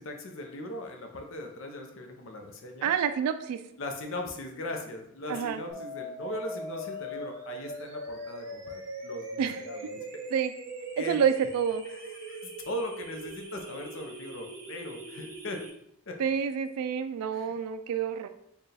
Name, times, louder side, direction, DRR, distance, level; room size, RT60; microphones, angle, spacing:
voice 1, 0.0-2.9 3.8-10.2 11.0-11.2 11.9-15.6 16.1-16.2 17.3-17.6, left 1 dB, 60° left, 3 dB, 0.6 m, -39 dB
voice 2, 2.8-3.6 5.3-5.6 9.4-9.6 10.3-10.5 11.0-11.8 16.2-18.3, right 7 dB, 80° right, 10 dB, 0.3 m, -28 dB
sound 1, 5.7-15.7, right 1 dB, 55° right, 1.1 m, -41 dB
4.5 x 2.3 x 3.3 m, 0.72 s
head